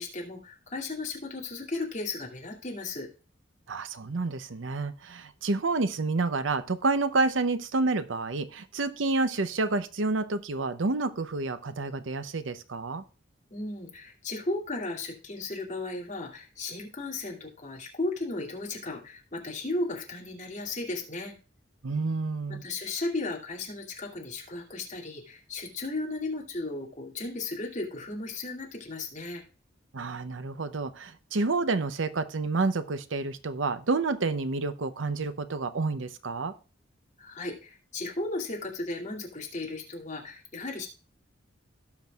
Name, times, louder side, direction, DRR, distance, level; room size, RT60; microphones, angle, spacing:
voice 1, 0.0-3.1 13.5-21.3 22.6-29.4 37.2-40.9, left 2 dB, 40° left, -2 dB, 2.5 m, -35 dB
voice 2, 3.7-13.0 21.8-22.6 29.9-36.5, right 3 dB, 85° right, 12 dB, 0.7 m, -29 dB
17.5 x 6.1 x 2.4 m, 0.35 s
head